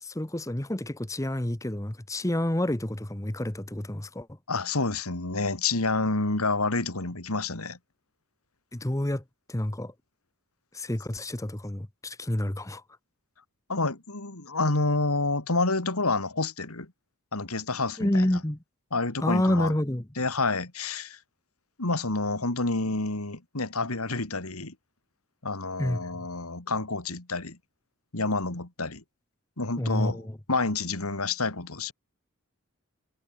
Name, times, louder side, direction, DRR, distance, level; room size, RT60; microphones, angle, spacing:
voice 1, 0.0-4.3 8.7-9.2 9.5-9.9 10.7-12.8 18.0-18.6 19.2-20.0 25.8-26.0 29.8-30.4, left 1 dB, 15° left, 1.0 m, -28 dB
voice 2, 4.5-7.8 13.7-16.9 17.3-18.3 18.9-19.8 20.2-21.2 21.8-24.7 25.4-27.6 28.1-29.0 29.6-31.9, left 3 dB, 90° left, 2.9 m, -28 dB
head